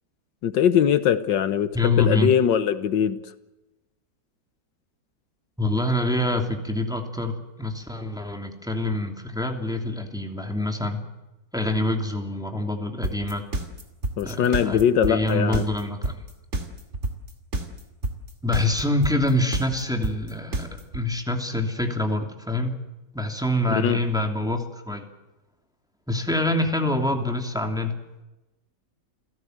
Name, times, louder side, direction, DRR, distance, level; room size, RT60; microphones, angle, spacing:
voice 1, 0.4-3.2 14.2-15.7 23.8-24.0, left 9 dB, 85° left, 13 dB, 1.7 m, -21 dB
voice 2, 1.7-2.3 5.6-11.0 11.5-13.4 14.2-14.8 15.1-16.2 18.4-22.7 23.1-25.1 26.1-27.9, left 1 dB, ahead, 3 dB, 2.8 m, -26 dB
sound 1, 13.0-21.0, right 2 dB, 40° right, 2.8 m, -28 dB
29.0 x 16.5 x 7.9 m, 1.0 s
omnidirectional pair, 1.9 m